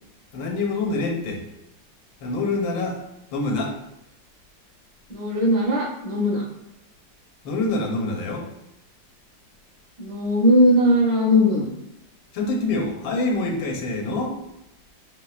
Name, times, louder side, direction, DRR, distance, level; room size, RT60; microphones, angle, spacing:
voice 1, 0.3-1.4 2.2-3.0 3.3-3.8 7.4-8.5 12.3-14.4, left 2 dB, 80° left, 1 dB, 1.5 m, -25 dB
voice 2, 5.1-6.4 10.0-11.6, equal, 75° right, -5 dB, 2.2 m, -19 dB
4.6 x 3.4 x 2.4 m, 0.87 s
omnidirectional pair, 2.1 m